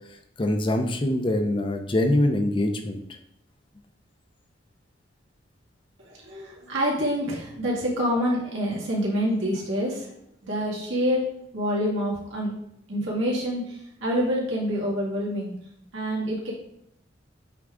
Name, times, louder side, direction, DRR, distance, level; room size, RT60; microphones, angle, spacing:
voice 1, 0.4-3.0, left 1 dB, 25° left, 6 dB, 0.5 m, -23 dB
voice 2, 6.0-10.1 10.4-11.2 11.5-12.5 12.9-15.5 15.9-16.5, equal, 80° right, -4 dB, 2.3 m, -27 dB
8.2 x 3.7 x 3.7 m, 0.74 s
head